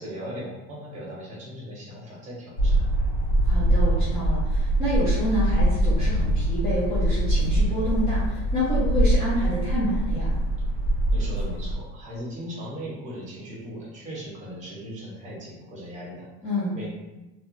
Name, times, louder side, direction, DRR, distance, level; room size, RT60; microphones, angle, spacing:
voice 1, 0.0-3.1 11.1-16.3 16.7-16.9, equal, 25° right, -5 dB, 0.9 m, -38 dB
sound 1, 2.6-11.7, right 1 dB, 80° left, 1.3 m, -23 dB
voice 2, 3.4-10.4 16.4-16.8, equal, 20° left, -10 dB, 0.6 m, -28 dB
2.6 x 2.3 x 3.0 m, 1.0 s
cardioid pair, 170°, 32 cm